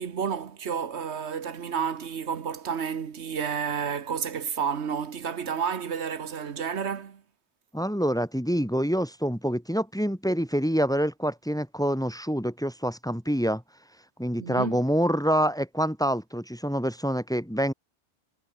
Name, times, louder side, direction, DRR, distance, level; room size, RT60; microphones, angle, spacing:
voice 1, 0.0-7.2 14.4-14.8, right 7 dB, 90° right, 1.5 m, -31 dB
voice 2, 7.7-13.6 14.2-17.7, equal, 5° left, 2.3 m, -26 dB
omnidirectional pair, 1.1 m